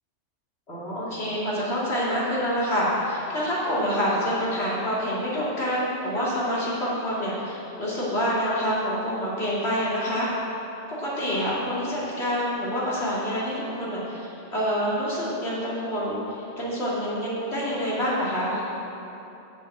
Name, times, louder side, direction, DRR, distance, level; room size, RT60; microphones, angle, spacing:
voice 1, 0.7-10.3 10.9-18.7, equal, 60° left, -8 dB, 2.8 m, -27 dB
7.6 x 7.1 x 7.7 m, 2.9 s
omnidirectional pair, 1.2 m